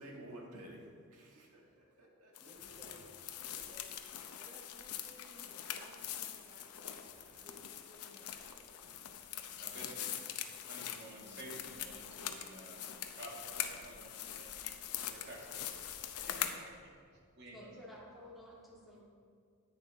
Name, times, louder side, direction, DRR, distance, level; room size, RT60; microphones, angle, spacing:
voice 1, 0.0-3.6 5.4-5.5 7.3-7.4 8.8-9.0, right 1 dB, 90° right, 0 dB, 1.7 m, -54 dB
sound 1, 2.3-16.6, left 10 dB, 90° left, 0.7 m, -43 dB
voice 2, 2.4-3.0 3.4-8.8 9.7-10.0, equal, 25° right, -1 dB, 1.0 m, -60 dB
voice 3, 9.3-9.9 10.7-12.9 13.2-14.5 14.9-16.9 17.4-17.8, right 1 dB, 50° right, -3 dB, 2.0 m, -52 dB
voice 4, 17.5-19.0, equal, ahead, -6 dB, 2.0 m, -53 dB
10.0 x 8.9 x 3.5 m, 2.1 s
head